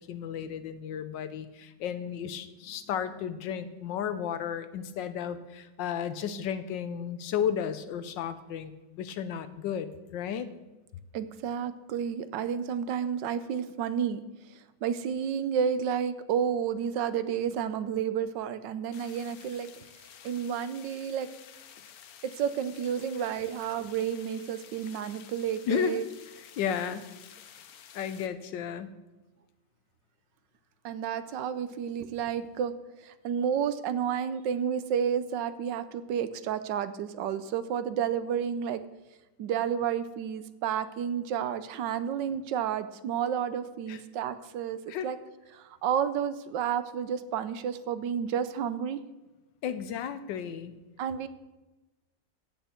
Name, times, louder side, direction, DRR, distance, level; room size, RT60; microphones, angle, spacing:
voice 1, 0.1-8.7 9.0-10.5 25.7-26.0 26.6-27.1 27.9-28.9 43.9-44.0 44.9-45.1 49.6-50.7, left 8 dB, 80° left, 12 dB, 1.5 m, -33 dB
voice 2, 11.1-19.7 20.2-21.3 22.2-26.0 30.8-32.7 33.0-38.8 39.4-45.2 45.5-49.0 51.0-51.3, right 8 dB, 80° right, 12 dB, 1.4 m, -31 dB
sound 1, 18.9-28.3, left 9 dB, 65° left, 1.1 m, -52 dB
14.5 x 8.9 x 4.4 m, 1.1 s
omnidirectional pair, 2.0 m